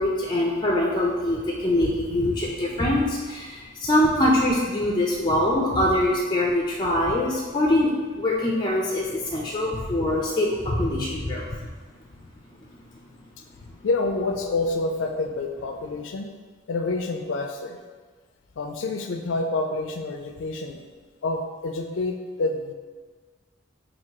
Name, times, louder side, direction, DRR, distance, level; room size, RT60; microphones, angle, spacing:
voice 1, 0.0-11.4, left 1 dB, 25° left, -3 dB, 0.4 m, -23 dB
voice 2, 13.8-16.3 16.7-17.8 18.6-20.8 21.2-22.7, left 3 dB, 85° left, 4 dB, 0.4 m, -28 dB
4.4 x 2.7 x 2.8 m, 1.4 s
head